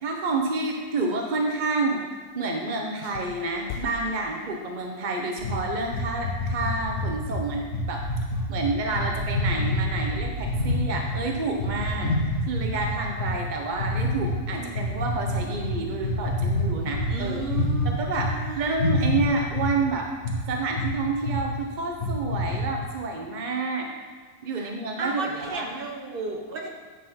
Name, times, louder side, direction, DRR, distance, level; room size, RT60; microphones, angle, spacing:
voice 1, 0.0-2.1 2.3-7.6 7.9-8.0 8.5-17.4 18.0-20.1 20.5-23.9 24.4-25.6, right 3 dB, 55° right, 1 dB, 0.5 m, -29 dB
sound 1, 3.0-5.2, left 8 dB, 70° left, 0.9 m, -41 dB
sound 2, 5.4-11.2 11.5-13.3 13.7-14.4 14.7-18.3 18.6-19.7 20.2-20.4 20.8-21.0 21.2-21.4 21.8-22.6, left 1 dB, 50° left, 1.5 m, -27 dB
voice 2, 14.5-15.0 17.1-18.0 18.2-18.7 24.4-24.7 25.0-26.7, right 3 dB, 40° right, 1 dB, 1.0 m, -34 dB
9.4 x 4.3 x 5.6 m, 1.5 s
omnidirectional pair, 1.9 m